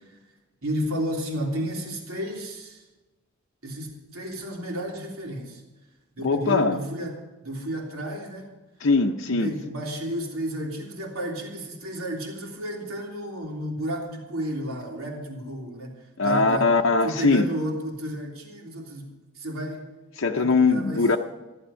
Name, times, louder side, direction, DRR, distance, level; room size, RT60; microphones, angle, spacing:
voice 1, 0.6-2.9 3.6-5.6 6.1-8.5 9.3-16.7 17.0-19.1 19.3-19.9 20.4-21.1, equal, 90° right, -1 dB, 3.2 m, -32 dB
voice 2, 6.2-6.8 8.8-9.5 16.2-17.5 20.2-21.2, left 3 dB, 70° left, 2 dB, 0.7 m, -21 dB
14.5 x 11.5 x 5.6 m, 1.1 s
head